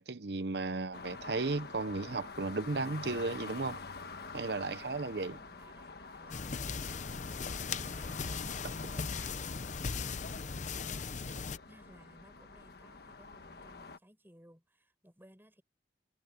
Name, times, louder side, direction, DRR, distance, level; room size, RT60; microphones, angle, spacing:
voice 1, 0.0-3.8 4.3-5.4, right 3 dB, 65° right, 0.9 m, -35 dB
sound 1, 0.9-14.0, left 4 dB, 60° left, 1.4 m, -47 dB
voice 2, 3.9-7.3 7.8-15.6, equal, 10° right, 6.6 m, -61 dB
sound 2, 6.3-11.6, left 5 dB, 45° left, 0.7 m, -38 dB
head